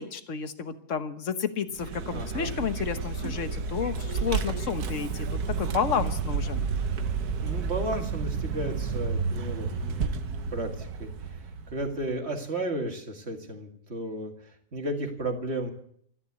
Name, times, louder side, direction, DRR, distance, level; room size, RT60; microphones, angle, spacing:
voice 1, 0.0-5.3 5.6-6.6, left 6 dB, 50° left, 10 dB, 1.4 m, -31 dB
Vehicle, 1.7-12.1, right 5 dB, 65° right, 1.5 m, -31 dB
voice 2, 2.1-2.5 7.4-10.1 10.5-11.1 11.7-14.3 14.7-15.7, right 1 dB, 40° right, 3 dB, 2.3 m, -33 dB
13.5 x 11.0 x 8.2 m, 0.65 s
omnidirectional pair, 1.8 m